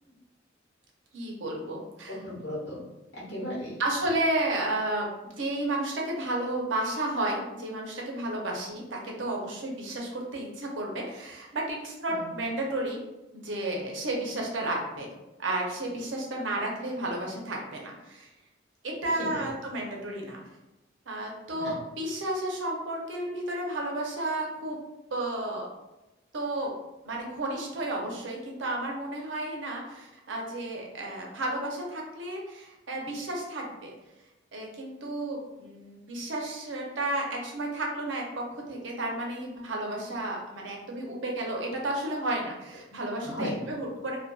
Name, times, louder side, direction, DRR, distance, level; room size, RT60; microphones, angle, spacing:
voice 1, 1.1-2.2 3.8-5.1 5.4-13.0 13.4-15.1 15.4-18.3 18.8-20.4 21.1-24.8 25.1-25.7 26.3-26.7 27.0-33.9 34.5-44.2, right 1 dB, 85° right, 0 dB, 0.6 m, -32 dB
voice 2, 2.2-2.8 3.1-3.8 12.1-12.3 19.3-19.5 21.5-21.7 43.2-43.5, equal, 90° left, -7 dB, 1.1 m, -36 dB
2.5 x 2.2 x 2.2 m, 1.0 s
head